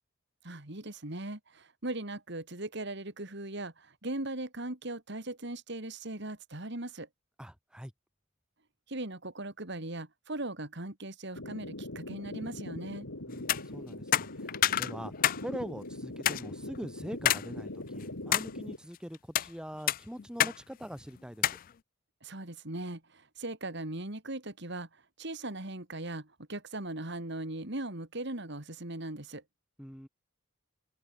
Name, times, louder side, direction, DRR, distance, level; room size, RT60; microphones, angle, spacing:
voice 1, 0.4-7.1 8.9-13.1 22.2-29.4, right 2 dB, 55° right, 3.2 m, -39 dB
voice 2, 7.4-7.9 13.3-21.6 29.8-30.1, equal, 5° right, 2.3 m, -43 dB
sound 1, 11.3-18.8, left 1 dB, 85° left, 3.3 m, -42 dB
sound 2, 13.4-13.6 14.1-15.4 15.8-15.9 16.3-16.4 17.3-17.5 17.9-18.5 19.1-19.5 19.9-20.6 20.8-20.9 21.4-21.6, left 12 dB, 45° left, 0.4 m, -27 dB
head